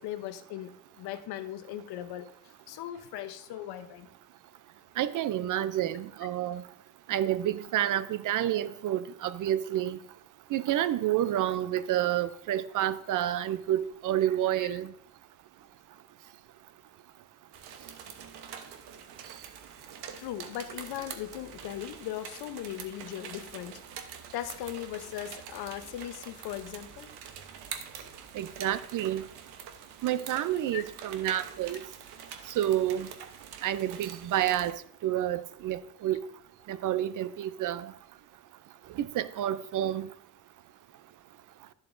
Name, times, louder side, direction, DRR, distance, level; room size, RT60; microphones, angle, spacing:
voice 1, 0.0-4.1 14.6-14.8 20.2-23.8 24.3-27.1 28.0-28.1 30.7-30.8, left 12 dB, 85° left, 0.8 m, -39 dB
voice 2, 5.0-6.6 7.1-10.0 10.5-14.9 28.3-29.2 30.0-31.8 32.6-33.1 33.6-36.2 36.7-37.9 38.9-40.1, right 12 dB, 55° right, 0.5 m, -29 dB
sound 1, 17.5-34.7, right 7 dB, 85° right, 1.0 m, -45 dB
11.0 x 7.2 x 2.6 m
cardioid pair, 105°, 38 cm